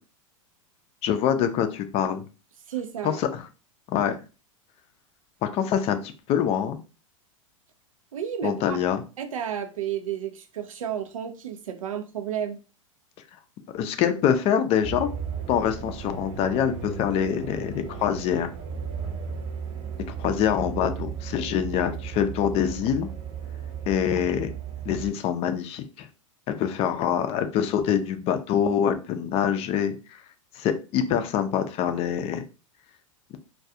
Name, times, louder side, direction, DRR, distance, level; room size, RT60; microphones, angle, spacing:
voice 1, 1.0-2.2 3.0-3.4 3.9-4.2 5.4-6.8 8.4-9.0 13.7-15.1 15.5-18.5 20.2-23.1 23.9-24.5 24.8-26.1 26.5-30.2 30.6-32.4, left 9 dB, 35° left, 0.4 m, -25 dB
voice 2, 2.7-3.2 8.1-8.8 9.2-12.6, right 9 dB, 85° right, 0.5 m, -32 dB
sound 1, 14.8-25.1, right 7 dB, 35° right, 0.7 m, -35 dB
2.3 x 2.3 x 2.7 m
hypercardioid pair, 100°, 17 cm